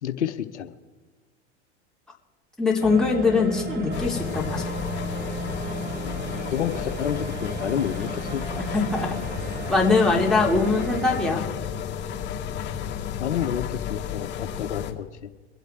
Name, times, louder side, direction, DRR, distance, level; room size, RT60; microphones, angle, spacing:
voice 1, 0.0-0.7 6.0-8.6 13.2-15.3, left 9 dB, 80° left, 9 dB, 1.0 m, -30 dB
voice 2, 2.6-4.7 8.7-9.1 9.7-11.4, left 4 dB, ahead, -3 dB, 3.5 m, -22 dB
sound 1, 2.8-11.2, right 3 dB, 30° right, 1.8 m, -35 dB
sound 2, 3.9-14.9, left 8 dB, 30° left, 2.4 m, -33 dB
23.5 x 8.2 x 4.6 m, 1.4 s
hypercardioid pair, 95°, 35 cm